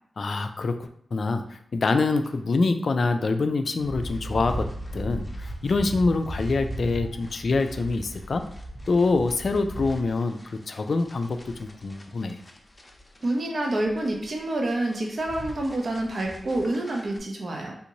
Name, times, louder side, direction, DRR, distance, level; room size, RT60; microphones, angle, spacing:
voice 1, 0.2-8.4 8.9-12.4, left 3 dB, 65° left, 8 dB, 0.3 m, -25 dB
sound 1, 3.8-17.2, equal, 25° left, 0.6 m, -37 dB
voice 2, 13.2-17.7, right 1 dB, 60° right, 0 dB, 0.7 m, -27 dB
3.5 x 2.6 x 2.9 m, 0.67 s
cardioid pair, 65°, 0 cm